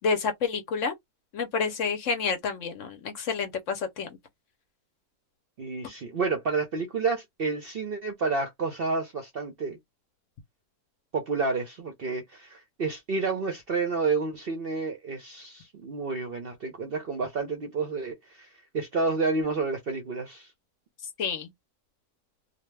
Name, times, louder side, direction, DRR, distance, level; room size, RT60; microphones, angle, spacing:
voice 1, 0.0-0.9 1.3-4.2 21.2-21.5, left 5 dB, 65° left, 0.8 m, -29 dB
voice 2, 5.6-9.8 11.1-18.5 18.7-20.5, right 4 dB, 55° right, 0.6 m, -30 dB
2.7 x 2.1 x 3.1 m
omnidirectional pair, 1.6 m